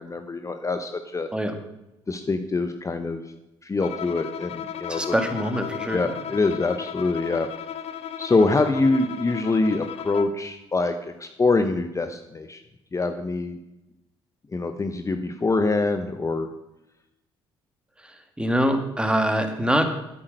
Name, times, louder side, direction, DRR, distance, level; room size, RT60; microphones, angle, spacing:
voice 1, 0.0-1.3 2.1-3.2 3.6-5.1 5.9-7.5 8.2-12.6 12.9-13.6 14.5-16.5, left 3 dB, 25° left, 8 dB, 0.9 m, -24 dB
Bowed string instrument, 3.8-10.5, left 8 dB, 60° left, 0.8 m, -35 dB
voice 2, 4.9-6.1 18.0-19.8, equal, 10° right, 7 dB, 1.9 m, -24 dB
8.9 x 8.7 x 6.5 m, 0.93 s
hypercardioid pair, 55°, 12 cm